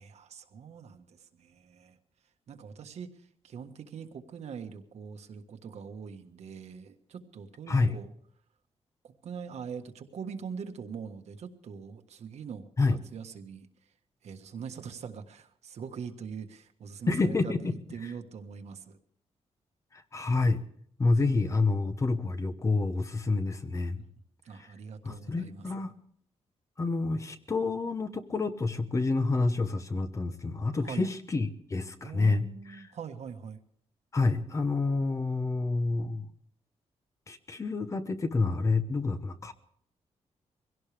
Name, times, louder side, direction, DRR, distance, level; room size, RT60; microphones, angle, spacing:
voice 1, 0.0-2.0 2.5-8.1 9.0-13.7 14.2-19.0 24.4-25.7 30.8-31.1 32.0-33.6, right 6 dB, 65° right, 6 dB, 1.5 m, -43 dB
voice 2, 7.7-8.0 12.8-13.0 17.1-17.7 19.9-20.6 21.0-24.0 24.5-24.7 25.0-25.9 26.8-32.9 34.1-36.3 37.3-39.5, left 3 dB, 25° left, 9 dB, 1.0 m, -28 dB
23.5 x 17.0 x 3.4 m, 0.63 s
wide cardioid pair, 170°, 12 cm